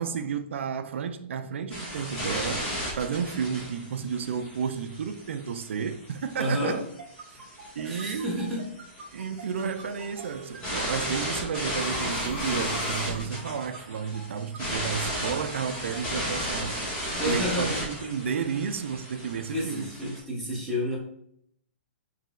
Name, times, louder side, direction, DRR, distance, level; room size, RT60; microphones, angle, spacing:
voice 1, 0.0-6.8 7.3-7.5 7.8-8.4 9.1-16.8 17.3-19.9, right 6 dB, 80° right, 0.4 m, -32 dB
sound 1, 1.7-20.2, equal, 20° left, 1.5 m, -35 dB
voice 2, 6.4-6.8 7.8-8.7 17.2-17.8 19.5-21.0, equal, ahead, 1.1 m, -29 dB
sound 2, 7.0-16.6, right 4 dB, 45° right, 1.3 m, -45 dB
sound 3, 8.1-8.5 9.9-13.9, left 2 dB, 65° left, 1.5 m, -41 dB
4.7 x 3.2 x 2.4 m
hypercardioid pair, 165°, 7 cm